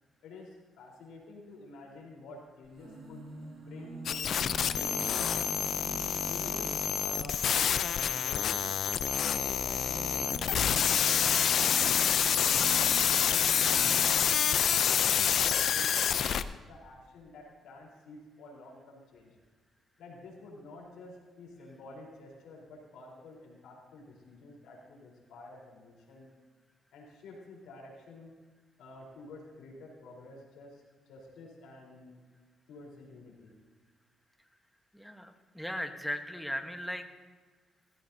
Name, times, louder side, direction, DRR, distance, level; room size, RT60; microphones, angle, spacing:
voice 1, 0.2-3.2 3.5-4.2 4.7-5.5 6.3-6.7 7.0-8.7 9.2-12.2 12.5-14.8 15.3-16.4 16.7-19.4 20.0-26.3 26.9-28.3 28.8-32.2 32.7-33.5, left 2 dB, 85° left, -2 dB, 4.2 m, -50 dB
sound 1, 2.6-7.5 9.2-14.6 15.6-15.7 15.9-16.0, right 3 dB, 60° right, 2.7 m, -45 dB
sound 2, 4.1-16.4, left 8 dB, 65° left, 0.5 m, -27 dB
voice 2, 34.9-37.0, equal, ahead, 6 dB, 1.3 m, -37 dB
18.5 x 15.5 x 2.8 m, 1.4 s
cardioid pair, 90°, 0 cm